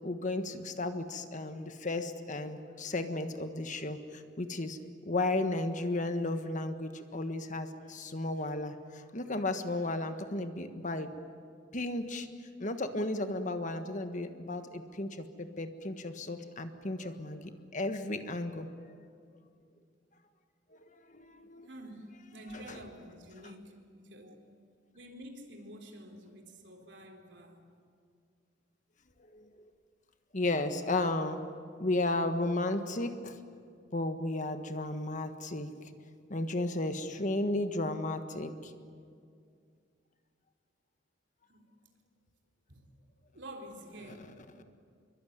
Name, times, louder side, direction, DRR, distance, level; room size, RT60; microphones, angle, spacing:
voice 1, 0.0-11.1 11.7-12.3 12.6-18.7 21.1-21.7 22.7-22.8 29.3-29.5 30.3-31.5 31.8-33.4 33.9-35.7 36.3-38.7, left 2 dB, 40° left, 8 dB, 1.5 m, -34 dB
voice 2, 21.7-24.4 24.9-27.7 41.5-41.7 42.7-42.9 43.3-44.3, right 1 dB, 65° right, 3 dB, 3.8 m, -49 dB
26.0 x 23.5 x 9.4 m, 2.3 s
head